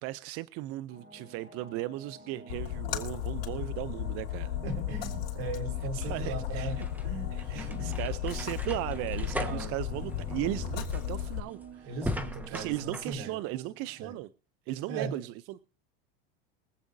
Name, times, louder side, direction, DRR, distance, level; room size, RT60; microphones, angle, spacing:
voice 1, 0.0-4.6 5.9-6.9 7.3-12.0 12.5-14.3 14.7-15.6, right 16 dB, 50° right, 0.5 m, -37 dB
sound 1, 0.9-14.1, right 4 dB, 30° right, 6.3 m, -50 dB
Splash splatter, 2.5-11.4, left 12 dB, 70° left, 3.0 m, -35 dB
voice 2, 4.6-6.8 7.0-8.1 9.4-9.7 11.8-13.4 14.0-14.1 14.9-15.2, right 3 dB, 75° right, 3.5 m, -38 dB
sound 2, 6.7-13.1, equal, 5° right, 1.2 m, -39 dB
23.5 x 8.4 x 2.6 m
supercardioid pair, 120°, 30 cm